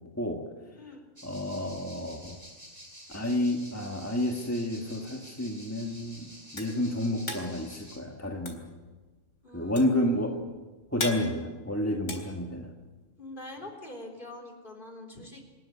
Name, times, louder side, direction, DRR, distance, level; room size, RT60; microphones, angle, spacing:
voice 1, 1.2-2.4 3.1-6.3 6.5-8.6 9.5-10.3 10.9-12.7, left 1 dB, 10° left, 1 dB, 1.8 m, -30 dB
sound 1, 1.2-8.0, equal, 30° right, 7.6 m, -50 dB
sound 2, 6.3-13.1, left 2 dB, 70° left, 4.2 m, -39 dB
voice 2, 9.4-9.9 10.2-10.4 13.2-15.4, left 2 dB, 40° left, 4 dB, 4.1 m, -44 dB
27.0 x 13.0 x 9.9 m, 1.3 s
omnidirectional pair, 1.3 m